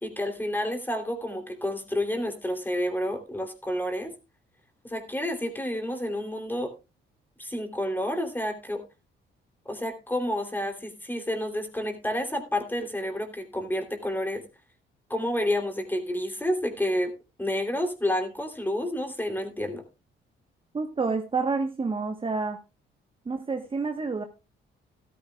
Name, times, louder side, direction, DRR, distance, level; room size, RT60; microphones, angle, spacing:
voice 1, 0.0-4.1 4.8-6.7 7.4-8.8 9.6-14.4 15.1-17.1 17.4-19.8, left 1 dB, 10° left, 5 dB, 3.1 m, -29 dB
voice 2, 20.7-22.6 23.2-24.2, right 4 dB, 25° right, 6 dB, 1.2 m, -28 dB
13.5 x 13.5 x 2.3 m, 0.27 s
cardioid pair, 90°, 20 cm